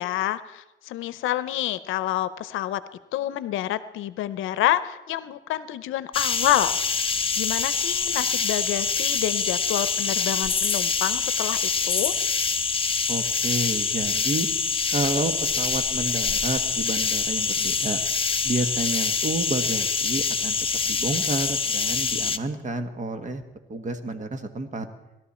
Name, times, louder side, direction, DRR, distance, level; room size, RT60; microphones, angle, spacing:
voice 1, 0.0-2.8 3.1-12.1, left 13 dB, 85° left, 15 dB, 0.6 m, -28 dB
sound 1, 6.1-22.4, left 5 dB, 25° left, 0.7 m, -25 dB
voice 2, 13.1-14.5 14.9-18.0 18.4-20.6 20.8-23.4 23.7-24.9, right 2 dB, 40° right, 8 dB, 1.5 m, -30 dB
19.5 x 12.5 x 4.3 m, 1.0 s
cardioid pair, 90°, 20 cm